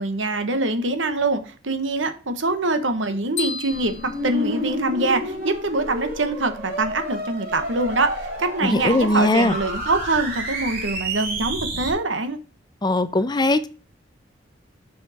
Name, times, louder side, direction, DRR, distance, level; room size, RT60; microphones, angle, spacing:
voice 1, 0.0-3.9 4.2-12.4, right 2 dB, 70° right, 1.2 m, -24 dB
sound 1, 3.4-5.3, left 5 dB, 40° left, 2.0 m, -34 dB
sound 2, 3.7-11.9, right 1 dB, 50° right, 3.5 m, -30 dB
voice 2, 8.6-9.5 12.8-13.7, left 1 dB, 20° left, 0.6 m, -20 dB
6.3 x 5.6 x 4.8 m
head